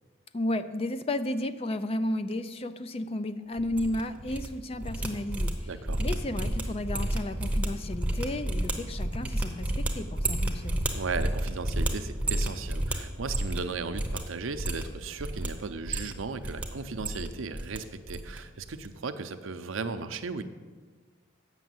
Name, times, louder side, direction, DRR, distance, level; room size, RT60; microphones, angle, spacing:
voice 1, 0.3-5.7 6.0-10.8, left 1 dB, 30° left, 11 dB, 0.4 m, -33 dB
sound 1, 3.6-4.5 4.7-13.7 13.9-14.2 14.5-15.5 15.8-16.6 16.9-17.8 18.1-18.4 18.6-18.9, right 1 dB, 5° right, 0.8 m, -31 dB
voice 2, 5.7-6.0 10.9-20.4, right 4 dB, 75° right, 9 dB, 0.6 m, -36 dB
8.3 x 6.2 x 7.7 m, 1.5 s
head